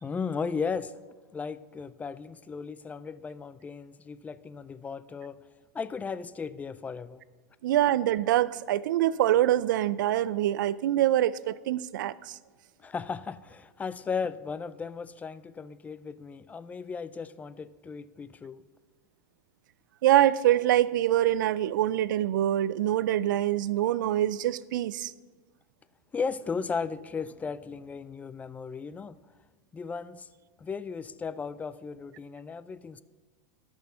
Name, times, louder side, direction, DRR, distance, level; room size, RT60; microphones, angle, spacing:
voice 1, 0.0-1.0 1.3-5.4 5.7-7.2 12.8-18.6 26.1-29.2 29.7-30.3 30.6-33.0, left 5 dB, 15° left, 0.3 m, -36 dB
voice 2, 7.6-12.4 20.0-25.1, right 13 dB, 80° right, 0.4 m, -25 dB
13.0 x 6.2 x 5.5 m
supercardioid pair, 120°, 10 cm